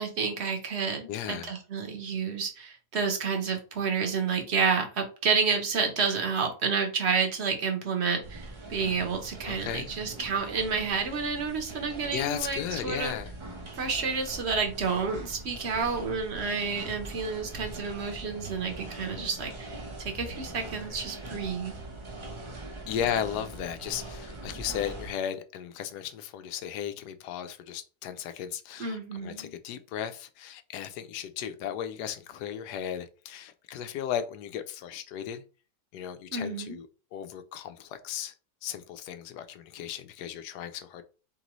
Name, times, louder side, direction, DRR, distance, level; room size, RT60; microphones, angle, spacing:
voice 1, 0.0-13.1 13.8-21.8 28.8-29.5 36.3-36.8, right 5 dB, 50° right, 1.1 m, -30 dB
voice 2, 1.1-1.5 9.5-9.9 12.1-13.3 22.9-35.4 35.9-38.3 38.6-41.0, left 9 dB, 90° left, 1.2 m, -35 dB
sound 1, 8.2-25.1, right 2 dB, 30° right, 0.6 m, -42 dB
3.9 x 3.7 x 3.0 m
omnidirectional pair, 1.7 m